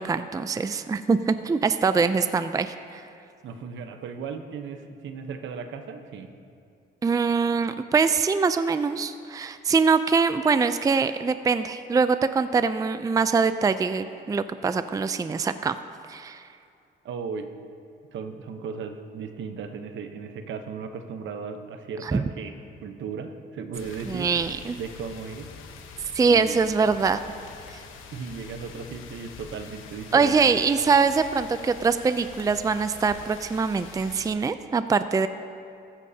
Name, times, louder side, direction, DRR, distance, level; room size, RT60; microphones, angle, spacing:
voice 1, 0.0-3.0 7.0-15.8 16.1-16.4 22.0-22.2 24.1-24.8 26.1-27.2 30.1-35.3, right 5 dB, 15° right, 11 dB, 0.4 m, -23 dB
voice 2, 3.4-6.3 17.0-17.5 18.1-22.5 22.8-24.5 24.8-25.5 26.3-26.6 28.1-30.4, right 5 dB, 70° right, 7 dB, 1.0 m, -36 dB
sound 1, 23.7-34.3, left 5 dB, 90° left, 1.1 m, -45 dB
15.0 x 14.0 x 2.8 m, 2.4 s
cardioid pair, 90°, 20 cm